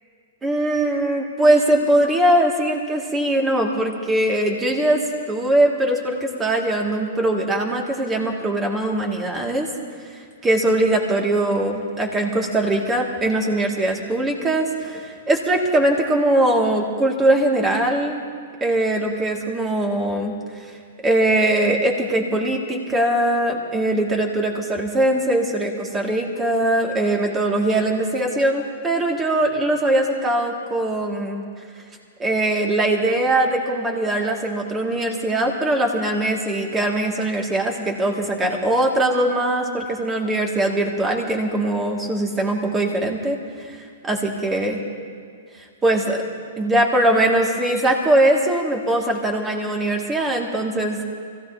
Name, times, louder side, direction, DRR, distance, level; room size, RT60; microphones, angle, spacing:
voice 1, 0.4-9.7 10.1-18.2 18.6-20.7 21.0-31.4 32.2-44.8 45.5-46.2 46.6-51.0, right 1 dB, 15° right, 1 dB, 2.2 m, -21 dB
25.5 x 16.0 x 2.9 m, 2.2 s
hypercardioid pair, 120°, 0 cm